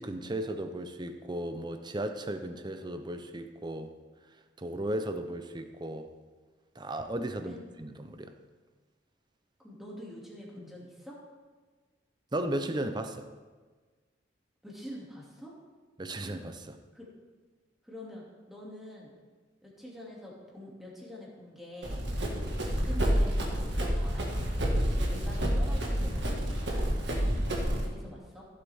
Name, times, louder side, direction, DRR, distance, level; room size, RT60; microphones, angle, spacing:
voice 1, 0.0-3.9 4.6-6.1 6.8-8.3 12.3-13.3 16.0-16.8, right 1 dB, 25° right, 8 dB, 0.7 m, -35 dB
voice 2, 9.6-11.2 14.6-15.5 16.6-17.1 17.8-19.1 19.6-22.0 22.4-26.9 27.8-28.5, left 1 dB, ahead, -5 dB, 2.4 m, -46 dB
Run, 21.8-27.9, equal, 60° right, 1.8 m, -29 dB
15.5 x 7.6 x 3.6 m, 1.4 s
head